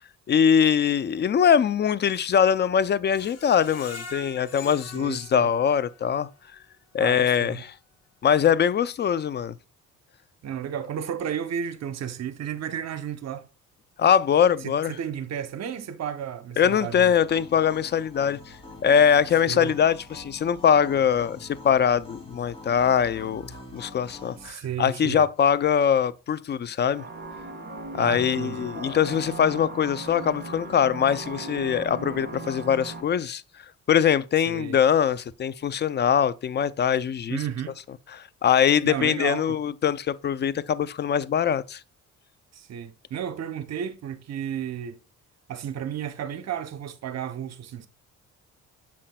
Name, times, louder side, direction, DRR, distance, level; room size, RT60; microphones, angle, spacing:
voice 1, 0.3-6.3 6.9-7.7 8.2-9.5 14.0-14.9 16.6-18.4 18.8-27.1 27.9-33.4 33.9-37.4 38.1-41.8, left 8 dB, 35° left, 0.4 m, -22 dB
Screech, 3.1-6.1 6.6-6.7 7.1-7.2, left 3 dB, 55° left, 1.2 m, -43 dB
voice 2, 5.0-5.5 7.0-7.6 10.4-13.4 14.6-17.2 19.4-19.7 24.4-25.2 27.9-28.7 34.5-34.8 37.3-37.8 38.8-39.6 42.5-45.0 45.5-47.9, right 9 dB, 60° right, 0.8 m, -33 dB
sound 1, 16.6-24.5, left 2 dB, 20° left, 2.5 m, -45 dB
sound 2, 26.9-33.0, right 2 dB, 35° right, 3.5 m, -37 dB
7.4 x 5.7 x 2.2 m
cardioid pair, 90°, 30 cm